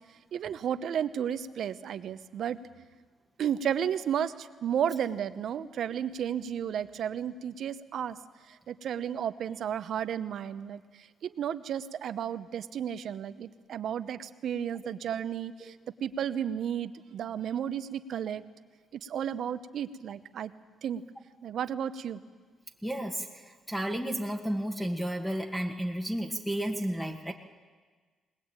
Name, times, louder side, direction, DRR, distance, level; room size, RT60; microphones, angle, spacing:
voice 1, 0.3-2.9 3.4-8.2 8.7-10.8 11.2-15.7 16.0-18.4 19.0-20.5 20.8-21.0 21.4-22.2, right 9 dB, 65° right, 12 dB, 1.0 m, -33 dB
voice 2, 22.8-23.3 23.7-27.3, right 1 dB, ahead, 3 dB, 1.7 m, -32 dB
20.5 x 20.0 x 8.9 m, 1.5 s
cardioid pair, 90°, 0 cm